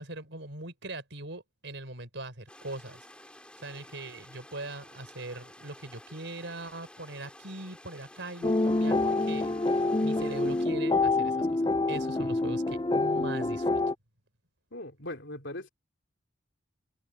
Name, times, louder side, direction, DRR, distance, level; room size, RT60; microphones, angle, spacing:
voice 1, 0.0-3.1 3.6-9.6 10.0-11.6 11.9-13.8, right 2 dB, 60° right, 4.7 m, -41 dB
sound 1, 2.5-10.7, left 1 dB, 5° left, 5.6 m, -52 dB
sound 2, 8.4-13.9, left 2 dB, 20° left, 0.5 m, -27 dB
voice 2, 14.7-15.7, left 1 dB, 60° left, 3.2 m, -39 dB
head